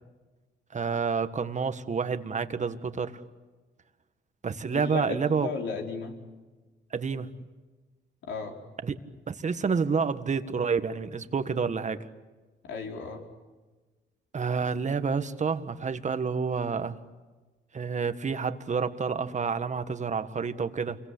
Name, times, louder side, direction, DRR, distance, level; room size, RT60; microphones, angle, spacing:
voice 1, 0.7-3.2 4.4-5.5 6.9-7.3 8.8-9.0 9.3-12.0 14.3-17.0 17.7-21.0, right 5 dB, 35° right, 10 dB, 1.7 m, -29 dB
voice 2, 4.7-6.2 8.2-8.6 12.6-13.2, left 5 dB, 70° left, 2 dB, 4.8 m, -35 dB
29.0 x 23.5 x 8.6 m, 1.3 s
cardioid pair, 90°, 20 cm